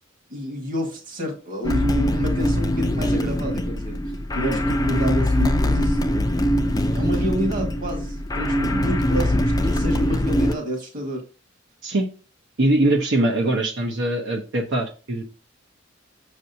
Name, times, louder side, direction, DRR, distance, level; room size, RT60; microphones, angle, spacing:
voice 1, 0.3-4.0 4.3-6.0 6.8-11.2, equal, 45° right, 1.8 m, -29 dB
sound 1, 1.6-10.6, left 1 dB, 20° left, 0.5 m, -22 dB
voice 2, 12.6-15.2, right 1 dB, 65° right, 0.9 m, -22 dB
6.4 x 6.2 x 2.7 m
head